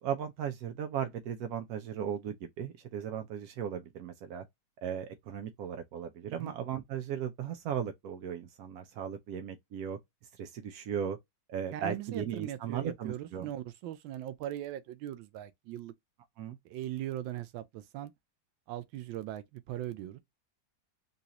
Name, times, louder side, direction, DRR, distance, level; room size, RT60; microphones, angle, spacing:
voice 1, 0.0-4.4 4.8-10.0 10.3-11.2 11.5-13.5 16.4-16.6, right 8 dB, 70° right, 0.9 m, -37 dB
voice 2, 11.7-15.9 16.6-18.1 18.7-20.2, right 13 dB, 90° right, 1.3 m, -39 dB
4.0 x 2.3 x 2.8 m
omnidirectional pair, 2.0 m